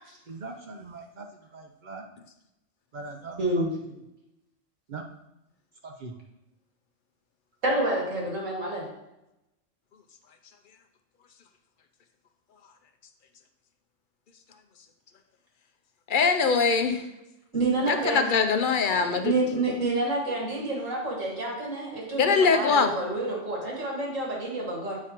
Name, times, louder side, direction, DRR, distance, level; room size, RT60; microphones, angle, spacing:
voice 1, 0.3-2.1 2.9-3.6 4.9-5.0 5.8-6.2, right 3 dB, 55° right, 3 dB, 0.6 m, -41 dB
voice 2, 3.4-3.7 7.6-8.9 17.5-18.3 18.9-25.0, right 2 dB, 90° right, -2 dB, 2.1 m, -28 dB
voice 3, 16.1-17.1 17.9-19.3 22.2-22.9, left 5 dB, 60° left, 7 dB, 0.5 m, -22 dB
8.4 x 4.9 x 2.9 m, 0.91 s
omnidirectional pair, 1.3 m